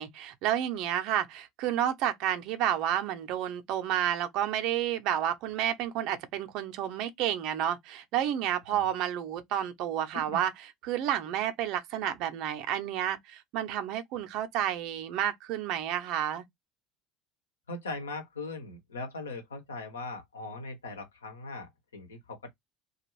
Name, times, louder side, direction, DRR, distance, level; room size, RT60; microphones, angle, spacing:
voice 1, 0.0-16.4, right 11 dB, 60° right, 0.7 m, -30 dB
voice 2, 17.7-21.7 21.9-22.5, left 3 dB, 85° left, 1.0 m, -40 dB
2.5 x 2.4 x 3.0 m
hypercardioid pair, 70°, 0 cm